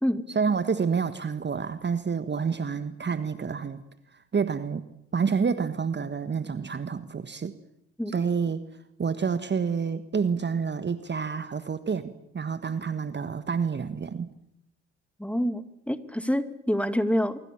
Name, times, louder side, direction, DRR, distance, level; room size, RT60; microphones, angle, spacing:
voice 1, 0.3-3.8 4.1-4.8 5.1-7.6 8.1-8.6 9.0-14.3, right 6 dB, 30° right, 12 dB, 1.6 m, -28 dB
voice 2, 15.2-17.4, equal, 5° left, 11 dB, 2.3 m, -27 dB
25.5 x 23.5 x 7.2 m, 0.80 s
hypercardioid pair, 55°, 38 cm